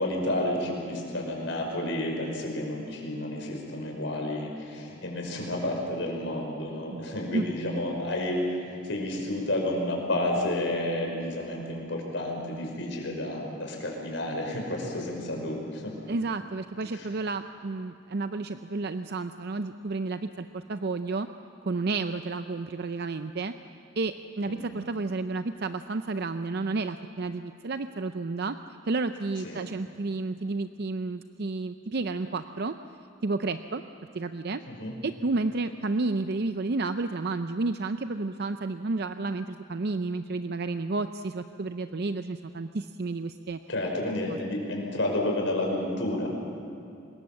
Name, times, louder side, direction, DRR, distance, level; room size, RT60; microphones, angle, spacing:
voice 1, 0.0-15.9 16.9-17.1 24.5-24.6 29.4-29.6 34.7-34.9 43.7-46.3, left 1 dB, 75° left, 0 dB, 5.7 m, -31 dB
voice 2, 16.1-21.3 21.6-23.5 24.0-28.6 28.8-32.7 33.2-33.8 34.1-34.6 35.0-43.6 44.3-44.4, right 3 dB, 55° right, 9 dB, 0.6 m, -31 dB
26.0 x 21.0 x 7.6 m, 2.6 s
head